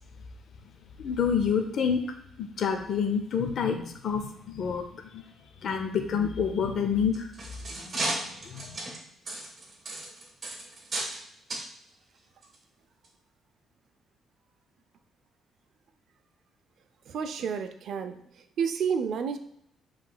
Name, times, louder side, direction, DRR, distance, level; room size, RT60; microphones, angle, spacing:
voice 1, 1.0-2.0 2.4-4.8 5.1-5.2 5.6-7.3 7.8-8.0 8.4-8.8, left 6 dB, 60° left, 5 dB, 0.5 m, -28 dB
sound 1, 7.0-11.2 11.5-11.7 12.4-12.5 13.0-13.1, right 2 dB, 40° right, 1.3 m, -35 dB
voice 2, 17.1-18.2 18.6-19.4, right 6 dB, 70° right, 8 dB, 0.5 m, -30 dB
7.4 x 3.2 x 2.3 m, 0.72 s
cardioid pair, 90°, 0 cm